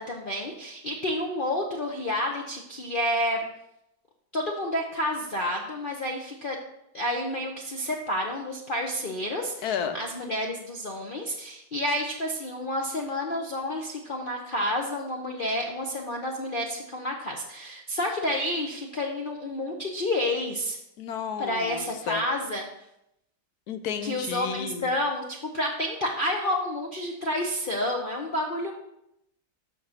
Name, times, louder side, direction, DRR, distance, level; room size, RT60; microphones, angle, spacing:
voice 1, 0.0-3.5 4.3-6.6 6.9-20.8 21.4-22.6 24.0-28.7, left 1 dB, 45° left, 0 dB, 0.7 m, -30 dB
voice 2, 9.6-10.0 21.0-22.2 23.7-24.9, left 7 dB, 70° left, 8 dB, 1.2 m, -32 dB
6.4 x 5.8 x 5.7 m, 0.82 s
omnidirectional pair, 1.8 m